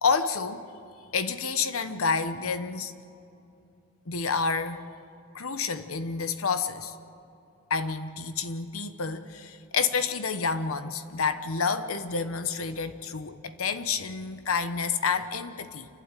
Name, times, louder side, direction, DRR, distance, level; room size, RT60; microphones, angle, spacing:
voice 1, 0.0-0.6 1.1-2.9 4.1-4.8 5.3-6.9 7.7-15.9, left 5 dB, 85° left, 10 dB, 1.1 m, -29 dB
28.5 x 12.0 x 9.1 m, 2.6 s
head